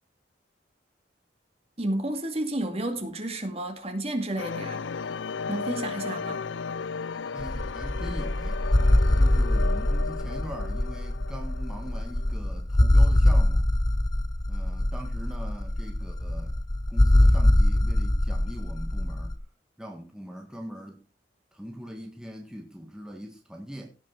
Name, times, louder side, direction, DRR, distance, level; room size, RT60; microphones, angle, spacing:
voice 1, 1.8-4.9 5.5-6.5, right 1 dB, 30° right, 2.3 m, -31 dB
sound 1, 4.4-12.3, left 5 dB, 75° left, 0.5 m, -35 dB
voice 2, 7.3-8.6 9.2-13.7 14.5-16.6 16.9-19.4 19.8-21.0 21.5-23.9, equal, 5° right, 1.6 m, -41 dB
sound 2, 7.4-19.3, left 1 dB, 20° left, 0.7 m, -23 dB
17.0 x 6.1 x 4.6 m
head